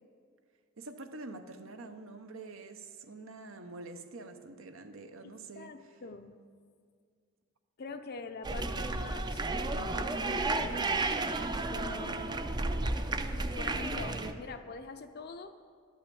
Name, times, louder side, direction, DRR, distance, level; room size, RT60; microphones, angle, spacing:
voice 1, 0.8-5.7, right 3 dB, 70° right, 8 dB, 0.8 m, -46 dB
voice 2, 5.2-6.4 7.8-10.7 11.7-12.4 13.3-15.5, left 4 dB, 50° left, 7 dB, 0.6 m, -45 dB
sound 1, 8.4-14.3, right 2 dB, 20° right, 0.5 m, -32 dB
12.0 x 5.7 x 8.4 m, 2.1 s
head